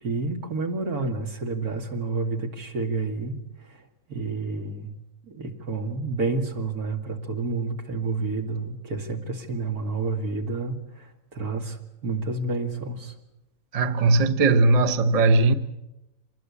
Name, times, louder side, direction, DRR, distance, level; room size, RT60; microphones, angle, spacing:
voice 1, 0.0-3.4 3.6-3.8 4.1-4.9 5.2-13.1, right 3 dB, 75° right, 2.7 m, -29 dB
voice 2, 13.7-15.5, right 3 dB, 30° right, 0.9 m, -19 dB
25.0 x 20.0 x 8.5 m
omnidirectional pair, 1.6 m